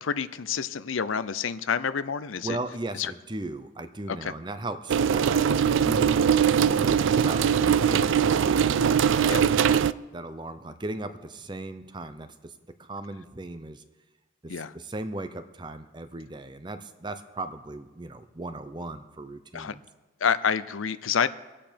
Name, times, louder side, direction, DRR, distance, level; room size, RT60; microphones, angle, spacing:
voice 1, 0.0-2.6 2.9-3.1 4.1-4.3 9.3-9.5 14.5-14.7 19.5-19.7 20.2-21.3, left 7 dB, 85° left, 15 dB, 0.6 m, -28 dB
voice 2, 2.4-8.8 9.2-12.5 12.8-13.8 14.4-19.8, right 2 dB, 25° right, 10 dB, 0.6 m, -37 dB
sound 1, 4.9-9.9, right 7 dB, 75° right, 0.4 m, -21 dB
23.5 x 8.7 x 5.2 m, 1.2 s
head